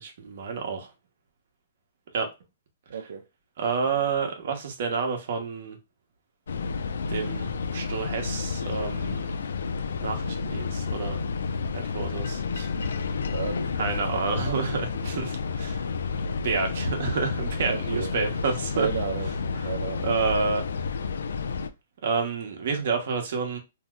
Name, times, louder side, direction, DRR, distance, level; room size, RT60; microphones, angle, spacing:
voice 1, 0.0-0.9 2.1-2.3 3.6-5.8 7.1-9.3 10.0-11.2 11.7-13.0 13.8-15.8 16.4-18.9 20.0-20.7 22.0-23.6, right 5 dB, 55° right, 0.9 m, -29 dB
voice 2, 2.9-3.3 13.3-14.6 17.7-18.1 18.8-19.3 19.6-20.1, right 6 dB, 75° right, 0.4 m, -33 dB
sound 1, 6.5-21.7, left 5 dB, 90° left, 0.3 m, -30 dB
2.8 x 2.0 x 3.4 m
hypercardioid pair, 165°, 0 cm